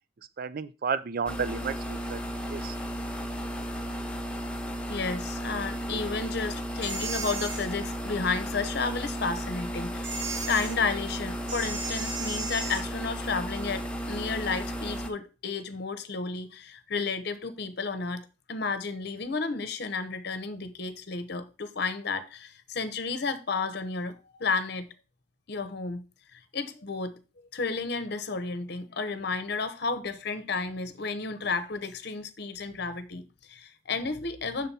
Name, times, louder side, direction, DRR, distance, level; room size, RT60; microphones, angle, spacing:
voice 1, 0.4-2.2 2.5-2.8, right 6 dB, 50° right, 0.4 m, -32 dB
sound 1, 1.3-15.1, equal, 5° left, 0.8 m, -34 dB
voice 2, 4.9-18.2 18.5-24.9 25.5-26.0 26.3-27.2 27.5-34.7, left 4 dB, 60° left, 0.8 m, -32 dB
sound 2, 6.8-7.7 10.0-10.8 11.5-12.9, right 4 dB, 75° right, 1.3 m, -35 dB
6.6 x 4.3 x 5.4 m
head